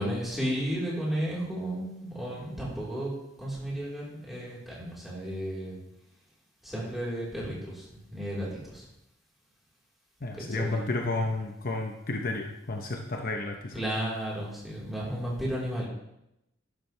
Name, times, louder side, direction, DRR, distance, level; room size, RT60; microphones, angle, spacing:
voice 1, 0.0-5.8 6.6-8.8 10.4-10.9 13.7-15.9, equal, ahead, -7 dB, 4.0 m, -33 dB
voice 2, 10.2-13.8, left 2 dB, 45° left, 3 dB, 0.9 m, -32 dB
12.5 x 11.5 x 3.4 m, 0.85 s
head